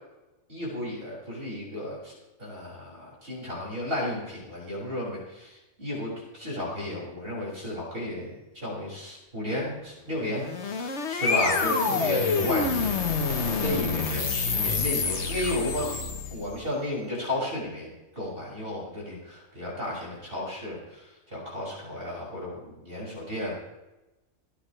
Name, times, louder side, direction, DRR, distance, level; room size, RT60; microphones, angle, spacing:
voice 1, 0.5-2.1 2.4-13.0 13.6-15.9 16.3-17.9 18.1-23.5, left 1 dB, 45° right, -5 dB, 6.8 m, -33 dB
sound 1, 10.3-16.6, left 5 dB, 55° left, 1.5 m, -27 dB
28.0 x 10.0 x 3.3 m, 1.0 s
omnidirectional pair, 1.4 m